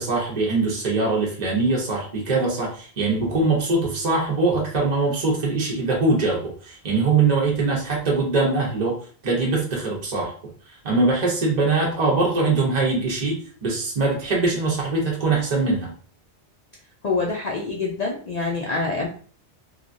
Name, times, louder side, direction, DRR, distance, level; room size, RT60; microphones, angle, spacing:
voice 1, 0.0-9.0 9.2-10.3 10.7-15.9, right 3 dB, 40° right, -3 dB, 0.8 m, -22 dB
voice 2, 17.0-19.1, left 3 dB, 50° left, -2 dB, 0.5 m, -26 dB
3.1 x 2.3 x 2.5 m, 0.42 s
omnidirectional pair, 1.1 m